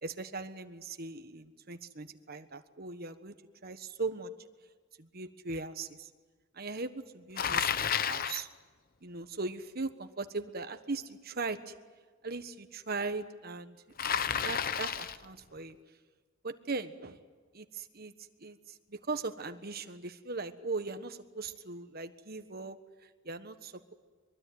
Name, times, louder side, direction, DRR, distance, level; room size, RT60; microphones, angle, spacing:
voice 1, 0.0-3.3 3.6-4.3 5.0-6.1 6.5-8.5 9.0-11.7 12.2-13.8 14.4-15.7 16.4-17.2 17.5-18.1 18.4-23.9, right 3 dB, 50° right, 9 dB, 1.4 m, -39 dB
Bicycle, 7.4-8.5 14.0-15.3, left 8 dB, 45° left, 0.7 m, -31 dB
23.0 x 23.0 x 9.4 m, 1.4 s
head